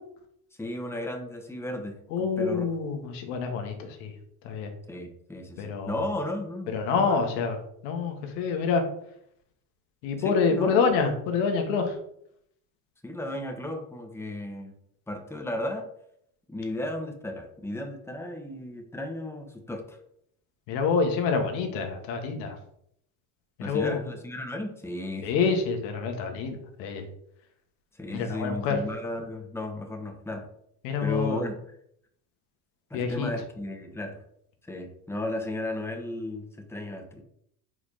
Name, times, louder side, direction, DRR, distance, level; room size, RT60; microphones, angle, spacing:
voice 1, 0.6-2.7 4.9-7.3 10.2-10.8 11.1-11.3 13.0-14.7 15.1-15.9 16.5-20.0 23.6-25.3 28.0-30.5 31.0-31.7 32.9-34.2 34.6-37.2, left 1 dB, 5° left, 3 dB, 1.3 m, -34 dB
voice 2, 2.1-4.1 4.4-4.7 5.6-5.9 6.7-7.6 7.8-8.8 10.0-12.0 20.7-22.6 23.6-24.0 25.2-27.0 28.1-28.8 30.8-31.4 32.9-33.3, left 5 dB, 85° left, 4 dB, 1.4 m, -27 dB
4.9 x 4.1 x 4.9 m, 0.71 s
supercardioid pair, 80°, 49 cm